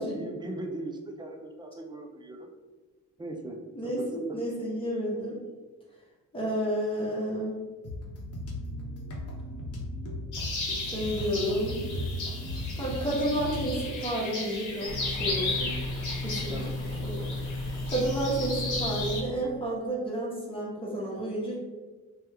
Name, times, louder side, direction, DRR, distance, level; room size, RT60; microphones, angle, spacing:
voice 1, 0.0-2.5 3.2-3.6 3.8-4.4 16.5-16.7, right 2 dB, 15° right, 3 dB, 0.4 m, -39 dB
voice 2, 3.7-5.4 6.3-7.6 10.8-11.8 12.8-15.8 16.2-16.7 17.0-17.3 17.9-21.6, right 1 dB, 20° left, -5 dB, 1.0 m, -31 dB
sound 1, 7.8-13.9, equal, 55° left, 0.8 m, -36 dB
sound 2, 10.3-19.2, left 3 dB, 80° left, 0.9 m, -35 dB
sound 3, 14.8-19.2, left 2 dB, 45° right, 0.9 m, -34 dB
2.9 x 2.3 x 3.3 m, 1.3 s
cardioid pair, 90°, 30 cm